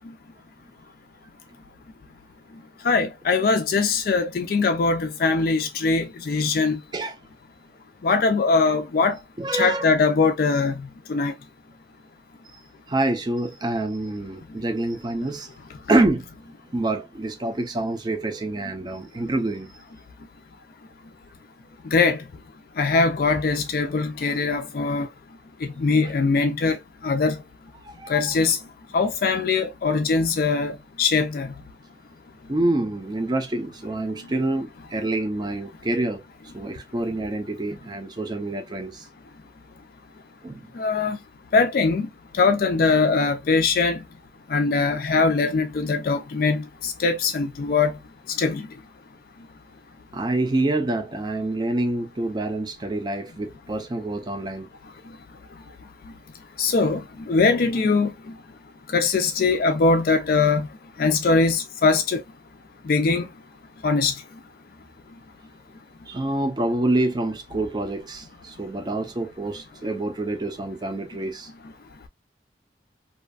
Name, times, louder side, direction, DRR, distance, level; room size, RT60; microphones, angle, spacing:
voice 1, 2.9-6.8 8.0-9.2 9.6-10.7 11.1-11.3 21.9-22.2 22.8-25.1 25.8-26.8 27.0-27.4 28.1-28.6 28.9-31.5 40.8-41.2 41.5-42.1 42.4-44.0 44.5-47.9 48.4-48.6 56.6-57.0 57.3-58.1 58.9-60.6 61.0-62.2 62.9-63.3 63.8-64.1, left 4 dB, 50° left, 0.4 m, -21 dB
voice 2, 9.4-9.9 12.9-15.5 15.9-16.3 16.7-19.7 27.8-28.2 32.5-36.2 36.5-39.0 40.4-40.7 50.1-54.7 66.1-71.5, right 2 dB, 25° right, 0.4 m, -26 dB
2.6 x 2.4 x 2.3 m
head